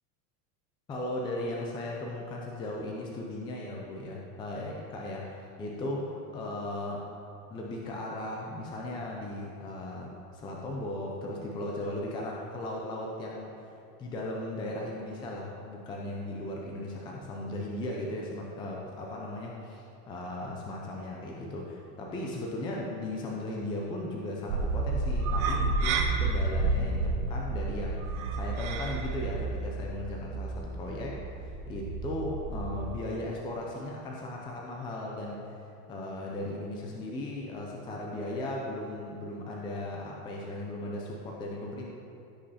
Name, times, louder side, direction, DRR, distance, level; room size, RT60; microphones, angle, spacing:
voice 1, 0.9-7.1 7.5-13.6 14.0-35.6 35.9-41.9, left 1 dB, 10° left, -2 dB, 0.5 m, -37 dB
sound 1, 24.5-32.9, right 3 dB, 70° right, 1.2 m, -30 dB
16.0 x 5.4 x 4.2 m, 2.6 s
supercardioid pair, 170°, 44 cm